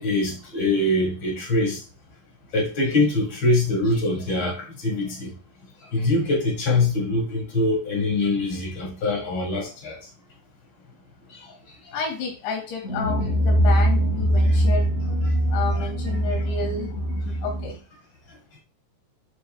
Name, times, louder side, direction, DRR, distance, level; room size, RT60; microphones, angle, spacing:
voice 1, 0.0-1.8 2.5-5.3 5.9-10.0 14.7-14.8 15.7-15.9, left 2 dB, 50° left, 1 dB, 1.4 m, -23 dB
voice 2, 11.9-15.0 15.5-16.9 17.3-17.8, left 5 dB, 90° left, 1 dB, 4.8 m, -31 dB
sound 1, 12.8-17.7, equal, 35° left, 1.3 m, -22 dB
11.0 x 5.3 x 2.3 m, 0.35 s
omnidirectional pair, 5.1 m